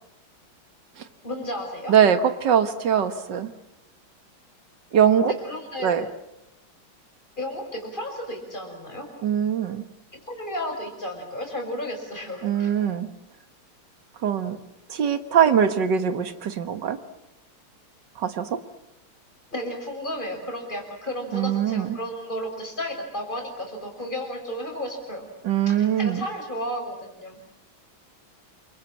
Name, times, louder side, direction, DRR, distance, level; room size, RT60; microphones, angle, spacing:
voice 1, 1.2-1.9 5.3-6.0 7.4-9.1 10.3-12.8 19.5-25.3 25.7-27.4, equal, 20° left, 2 dB, 6.4 m, -33 dB
voice 2, 1.9-3.5 4.9-5.3 5.8-6.1 9.2-9.8 12.4-13.1 14.2-14.6 14.9-17.0 18.2-18.6 21.3-21.9 25.4-26.2, right 8 dB, 60° right, 10 dB, 2.1 m, -22 dB
28.5 x 24.5 x 7.6 m, 0.87 s
omnidirectional pair, 2.3 m